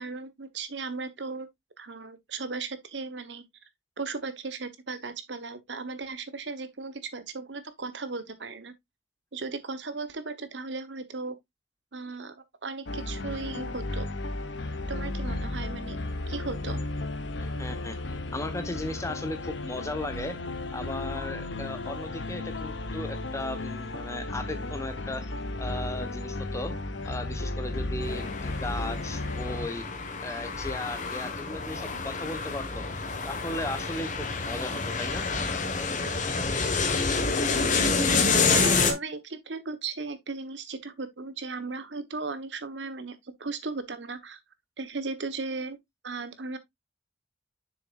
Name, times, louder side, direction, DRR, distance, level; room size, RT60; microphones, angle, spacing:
voice 1, 0.0-1.5 1.8-3.4 4.0-8.7 9.3-11.3 11.9-12.3 12.6-14.1 14.9-16.0 16.3-16.8 38.5-44.4 44.8-45.8 46.0-46.6, right 4 dB, 75° right, 1.1 m, -36 dB
sound 1, 12.9-29.7, left 2 dB, 80° left, 0.9 m, -34 dB
voice 2, 17.4-18.0 18.3-20.4 20.7-25.3 25.6-26.7 27.0-29.8 30.2-32.9 33.2-35.2, left 1 dB, 15° left, 1.1 m, -36 dB
sound 2, 28.0-38.9, left 4 dB, 45° left, 1.4 m, -28 dB
6.8 x 6.8 x 2.4 m
head